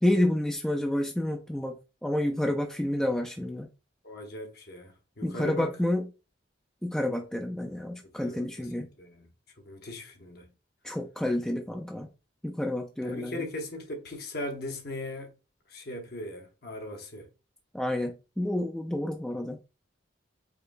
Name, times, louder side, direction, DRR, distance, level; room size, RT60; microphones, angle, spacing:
voice 1, 0.0-3.7 5.2-6.1 6.8-8.9 10.8-12.1 12.4-13.5 17.7-19.6, left 1 dB, 5° left, 0.3 m, -29 dB
voice 2, 4.0-5.7 8.0-9.3 9.6-10.5 13.0-15.4 15.7-17.3, left 1 dB, 55° left, 0.9 m, -39 dB
4.8 x 2.1 x 2.5 m
head